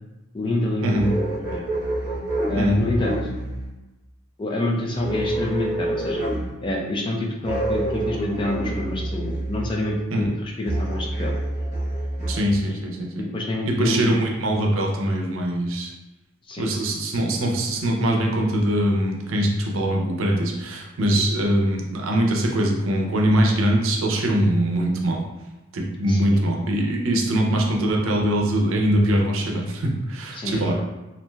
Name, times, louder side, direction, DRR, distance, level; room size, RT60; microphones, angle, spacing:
voice 1, 0.3-1.6 2.5-3.2 4.4-6.2 6.6-11.3 12.6-12.8 13.2-14.2 16.5-16.7 21.1-21.2 26.1-26.4 30.3-30.8, left 1 dB, 25° left, -1 dB, 0.3 m, -27 dB
sound 1, 1.0-3.7 4.9-6.6 7.4-9.8 10.6-12.4, right 1 dB, 35° right, 1.0 m, -27 dB
voice 2, 12.3-13.2 13.7-15.9 16.6-25.2 25.7-30.8, right 1 dB, 85° right, 0 dB, 0.5 m, -22 dB
3.1 x 2.5 x 2.2 m, 1.0 s
head